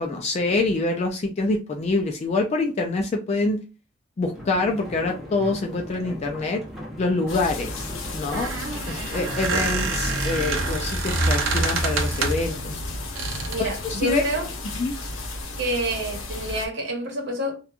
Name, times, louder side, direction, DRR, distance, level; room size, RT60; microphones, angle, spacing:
voice 1, 0.0-3.6 4.2-6.6 7.0-8.5 8.9-12.6 13.6-14.2 14.8-14.9, left 3 dB, 35° left, 0.3 m, -25 dB
sound 1, 4.3-10.4, left 1 dB, ahead, 0.6 m, -39 dB
sound 2, 7.3-16.7, left 2 dB, 90° left, 0.6 m, -33 dB
Squeak, 8.2-12.5 13.2-13.7, right 3 dB, 90° right, 0.7 m, -26 dB
voice 2, 13.5-14.5 15.6-17.6, right 1 dB, 65° right, 0.9 m, -28 dB
2.9 x 2.2 x 2.4 m
head